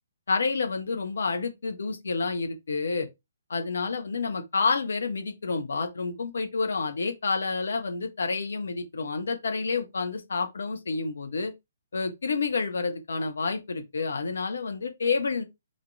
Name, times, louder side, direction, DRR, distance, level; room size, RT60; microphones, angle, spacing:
voice 1, 0.3-3.1 3.5-11.5 11.9-15.4, left 4 dB, 60° left, 1.2 m, -29 dB
4.2 x 3.2 x 3.6 m
figure-of-eight pair, 130°, 0 cm